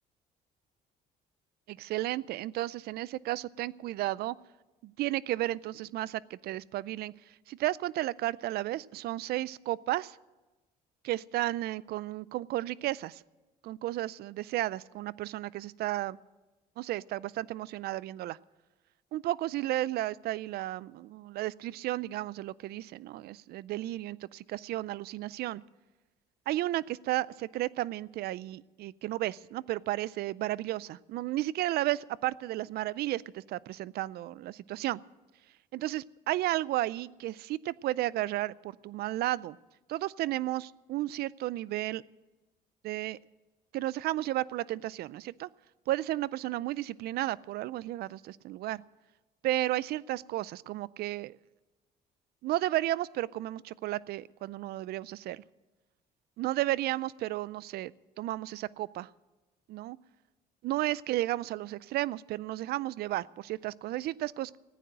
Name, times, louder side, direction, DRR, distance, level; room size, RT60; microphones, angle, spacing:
voice 1, 1.7-4.4 4.8-7.1 7.5-10.2 11.0-13.2 13.6-16.2 16.8-18.4 19.1-25.6 26.5-35.0 35.7-39.6 39.9-42.0 42.8-43.2 43.7-45.5 45.9-48.8 49.4-51.4 52.4-55.4 56.4-57.9 58.2-59.1 59.7-60.0 60.6-64.6, right 15 dB, 70° right, 22 dB, 0.4 m, -33 dB
15.0 x 9.3 x 8.8 m, 1.1 s
cardioid pair, 110°, 17 cm